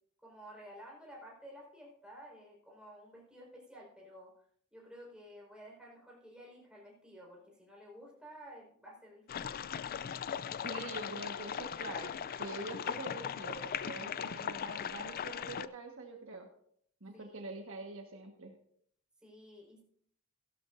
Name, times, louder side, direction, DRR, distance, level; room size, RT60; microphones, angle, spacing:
voice 1, 0.2-4.3 4.7-9.6 17.1-17.6 19.2-19.8, equal, 5° right, -3 dB, 4.6 m, -53 dB
sound 1, 9.3-15.7, left 8 dB, 45° left, 0.4 m, -39 dB
voice 2, 10.6-12.1 12.4-16.5 17.0-18.5, right 2 dB, 65° right, 3 dB, 1.5 m, -45 dB
15.5 x 12.5 x 2.6 m, 0.64 s
head